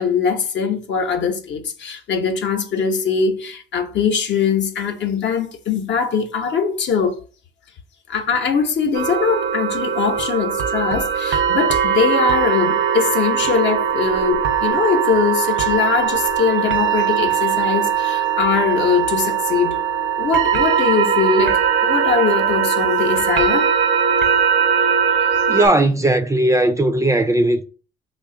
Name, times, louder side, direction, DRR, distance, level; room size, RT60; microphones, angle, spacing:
voice 1, 0.0-7.2 8.1-19.8 20.2-23.7, left 6 dB, 65° left, 0.8 m, -21 dB
sound 1, 8.9-25.7, right 8 dB, 70° right, 0.6 m, -20 dB
voice 2, 25.5-27.6, right 1 dB, 15° right, 0.3 m, -17 dB
3.3 x 2.4 x 3.6 m
cardioid pair, 90°, 20 cm